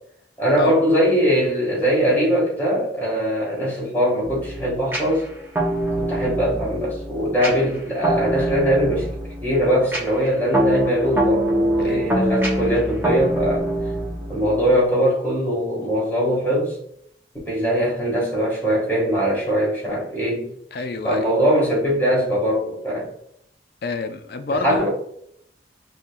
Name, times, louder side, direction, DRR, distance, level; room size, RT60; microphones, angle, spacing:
voice 1, 0.4-5.3 6.0-9.1 9.4-13.7 14.3-16.8 17.4-20.5 21.0-23.0 24.5-24.9, equal, 10° left, 1.4 m, -21 dB
sound 1, 4.2-14.8, right 1 dB, 10° right, 0.6 m, -24 dB
voice 2, 11.8-12.2 20.7-21.3 23.8-24.9, left 3 dB, 60° left, 0.4 m, -28 dB
4.3 x 2.8 x 2.2 m
head